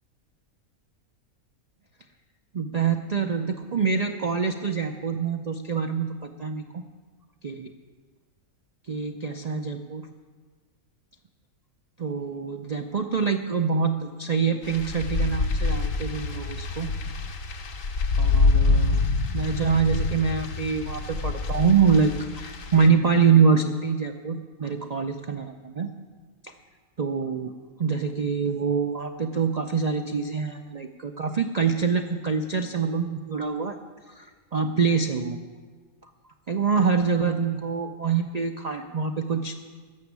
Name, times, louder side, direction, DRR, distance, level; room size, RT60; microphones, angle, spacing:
voice 1, 2.5-6.6 7.4-7.7 8.9-10.1 12.0-16.9 18.2-19.0 19.3-25.9 26.4-26.5 27.0-27.5 27.8-33.8 34.1-34.3 34.5-35.4 36.5-39.5, right 5 dB, 65° right, 5 dB, 0.4 m, -25 dB
sound 1, 14.6-22.9, left 3 dB, 65° left, 1.3 m, -26 dB
14.0 x 7.0 x 9.6 m, 1.5 s
omnidirectional pair, 1.5 m